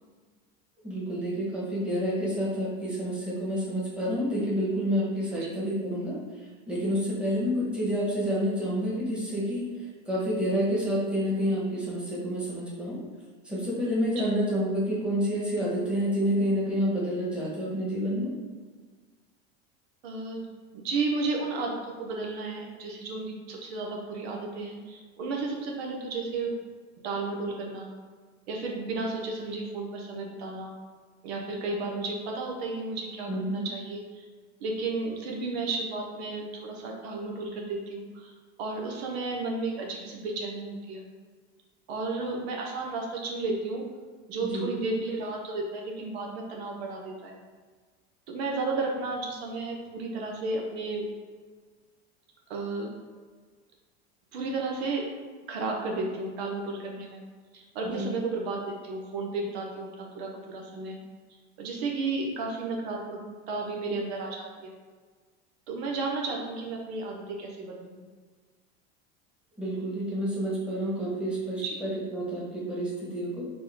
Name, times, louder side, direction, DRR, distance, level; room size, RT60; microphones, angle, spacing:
voice 1, 0.8-6.2 6.7-9.7 10.1-13.0 13.4-18.3 33.3-33.7 44.5-44.7 57.9-58.1 69.6-73.4, equal, 5° right, -6 dB, 1.3 m, -29 dB
voice 2, 20.0-20.4 20.7-26.5 27.0-27.9 28.5-30.7 31.2-34.3 34.6-41.0 41.9-43.8 44.3-47.3 48.3-51.1 52.5-52.9 54.3-55.0 55.5-57.2 57.5-61.0 61.6-63.2 63.5-64.7 65.7-67.9 71.6-71.8, right 3 dB, 80° right, 0 dB, 1.0 m, -33 dB
4.0 x 3.1 x 3.6 m, 1.5 s
supercardioid pair, 125°, 31 cm